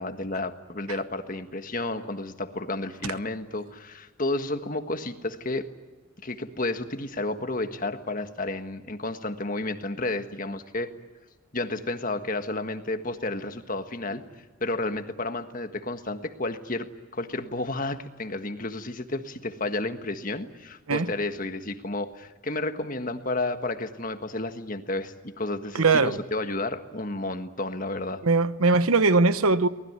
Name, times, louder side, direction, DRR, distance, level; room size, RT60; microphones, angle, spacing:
voice 1, 0.0-5.7 6.2-10.9 11.5-14.2 14.6-16.9 17.1-28.2, left 2 dB, 40° left, 1.6 m, -31 dB
voice 2, 25.8-26.2 28.2-29.7, right 3 dB, 85° right, 1.1 m, -20 dB
24.0 x 20.0 x 9.7 m
head